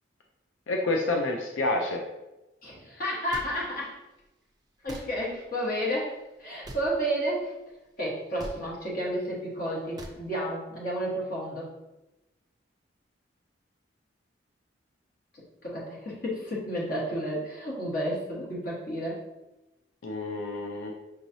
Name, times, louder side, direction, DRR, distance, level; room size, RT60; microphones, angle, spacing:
voice 1, 0.7-2.0 20.0-20.9, left 2 dB, 85° left, 1 dB, 0.5 m, -28 dB
voice 2, 2.6-4.0 4.8-7.5 8.0-11.7 15.3-19.2, equal, 50° left, -4 dB, 1.3 m, -31 dB
sound 1, 3.3-3.5 4.9-5.1 6.6-6.9 8.4-8.6 10.0-10.2, right 1 dB, 20° right, 0.4 m, -40 dB
5.6 x 3.1 x 2.7 m, 1.0 s
head